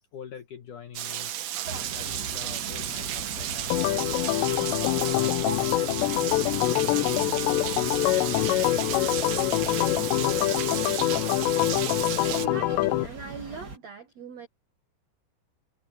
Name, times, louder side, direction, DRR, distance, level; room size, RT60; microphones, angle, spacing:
voice 1, 0.1-1.3 1.7-3.9 4.3-9.5, left 8 dB, 60° left, 2.2 m, -45 dB
Rain, 0.9-12.5, right 12 dB, 85° right, 1.8 m, -33 dB
sound 1, 1.6-13.8, right 3 dB, 25° right, 2.3 m, -40 dB
Organ, 3.7-13.1, left 18 dB, 85° left, 2.7 m, -25 dB
voice 2, 12.3-14.5, right 5 dB, 65° right, 1.7 m, -40 dB
omnidirectional pair, 5.3 m